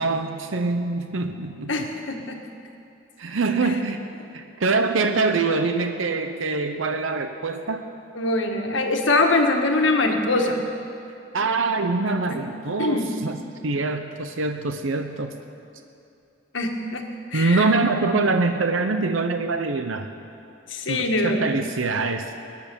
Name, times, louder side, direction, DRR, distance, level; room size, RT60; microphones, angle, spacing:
voice 1, 0.0-1.9 3.2-4.0 4.3-7.8 11.3-13.4 13.6-15.3 17.3-20.1 20.9-22.3, right 3 dB, 80° right, 7 dB, 0.8 m, -24 dB
voice 2, 1.7-2.4 8.1-10.6 12.3-12.4 12.8-13.1 16.5-17.7 20.7-21.7, left 2 dB, 70° left, 3 dB, 1.5 m, -23 dB
20.0 x 10.0 x 6.9 m, 2.6 s
head